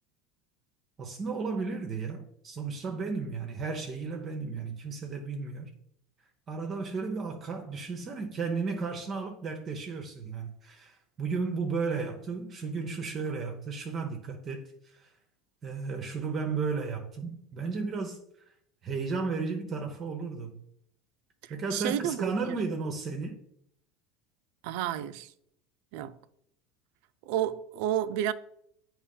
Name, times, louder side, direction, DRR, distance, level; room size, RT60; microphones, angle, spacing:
voice 1, 1.0-5.7 6.5-15.1 15.6-18.2 18.8-20.6 21.5-23.4, right 4 dB, 35° right, 0.8 m, -34 dB
voice 2, 21.7-22.6 24.6-25.3 25.9-26.1 27.3-28.3, right 11 dB, 70° right, 0.4 m, -31 dB
8.2 x 3.0 x 5.4 m
supercardioid pair, 125°, 0 cm